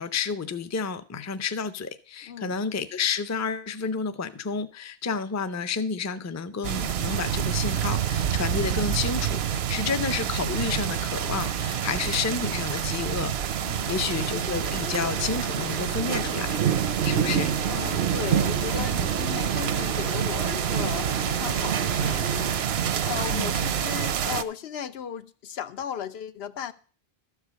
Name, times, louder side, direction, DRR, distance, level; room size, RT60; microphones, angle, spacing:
voice 1, 0.0-17.5 18.7-18.9 23.3-23.5, left 5 dB, 25° left, 0.4 m, -30 dB
voice 2, 2.3-2.6 9.8-10.0 13.6-13.9 17.7-26.7, left 9 dB, 80° left, 0.9 m, -36 dB
sound 1, 6.6-24.4, right 9 dB, 80° right, 0.9 m, -27 dB
sound 2, 14.0-22.6, left 1 dB, 55° left, 1.8 m, -40 dB
13.0 x 4.8 x 6.8 m
omnidirectional pair, 1.0 m